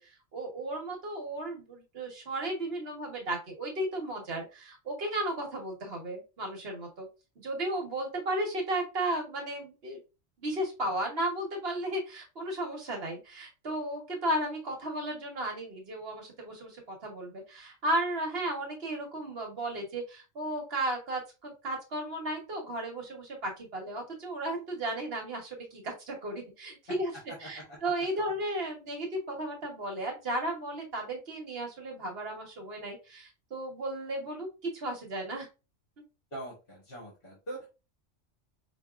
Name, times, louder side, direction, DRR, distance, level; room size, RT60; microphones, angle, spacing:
voice 1, 0.0-7.1 7.4-10.0 10.4-27.1 27.4-34.5 34.7-35.5, right 1 dB, 55° right, 1 dB, 1.2 m, -34 dB
voice 2, 27.4-27.8 36.3-37.7, right 1 dB, 50° left, -4 dB, 1.4 m, -42 dB
4.6 x 2.6 x 2.3 m, 0.30 s
omnidirectional pair, 1.3 m